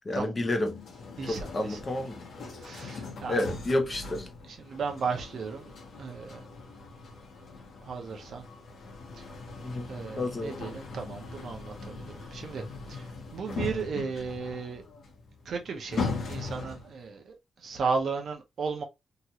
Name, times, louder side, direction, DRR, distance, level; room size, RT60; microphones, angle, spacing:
voice 1, 0.1-0.7 1.3-2.2 3.3-4.3 9.6-9.9 10.2-10.6, left 1 dB, 25° left, 0.7 m, -30 dB
sound 1, 0.6-17.0, left 4 dB, 65° left, 1.0 m, -40 dB
voice 2, 1.2-1.8 2.6-3.4 4.5-5.6 6.0-6.4 7.9-8.4 9.9-11.9 12.3-12.6 13.3-14.8 15.5-17.2 17.6-18.8, right 5 dB, 60° right, 0.6 m, -34 dB
2.9 x 2.4 x 2.8 m
wide cardioid pair, 160°, 0 cm